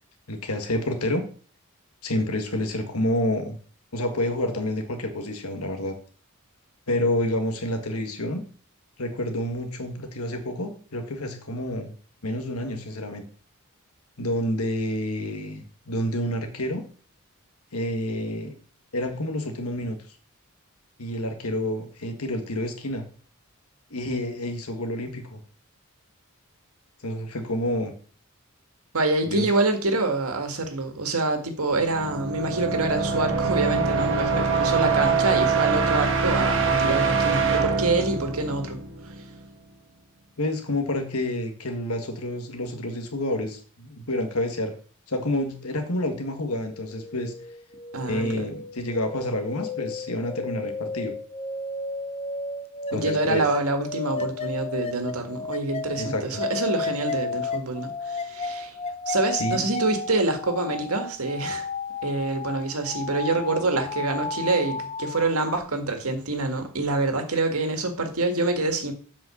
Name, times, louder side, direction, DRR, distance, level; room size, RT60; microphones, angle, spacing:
voice 1, 0.3-1.2 2.0-3.6 3.9-6.0 6.9-8.4 9.0-11.9 12.2-13.2 14.2-16.8 17.7-18.5 18.9-20.0 21.0-23.0 23.9-25.4 27.0-27.9 29.3-29.5 40.4-44.7 45.1-47.3 48.1-51.1 52.9-53.4 56.0-56.4 59.4-59.7, left 1 dB, 85° left, 1.7 m, -28 dB
voice 2, 28.9-38.8 47.9-48.4 52.9-58.8 59.1-61.7 62.0-68.9, right 2 dB, 80° right, 1.8 m, -26 dB
sound 1, 31.7-39.4, right 5 dB, 60° right, 1.7 m, -24 dB
sound 2, 46.4-65.6, left 4 dB, 25° left, 0.6 m, -33 dB
8.0 x 5.6 x 7.0 m
head